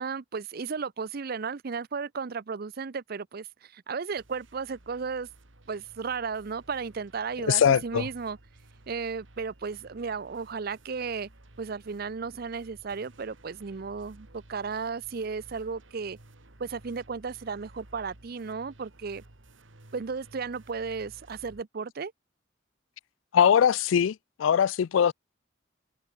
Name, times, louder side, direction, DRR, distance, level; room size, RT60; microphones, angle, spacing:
voice 1, 0.0-5.3 5.7-8.4 8.9-11.3 11.6-16.2 16.6-19.2 19.9-22.1, right 5 dB, 50° right, 0.6 m, -34 dB
sound 1, 4.2-21.6, right 1 dB, 85° right, 2.4 m, -55 dB
voice 2, 7.4-8.0 23.3-25.1, left 8 dB, 90° left, 0.4 m, -22 dB
head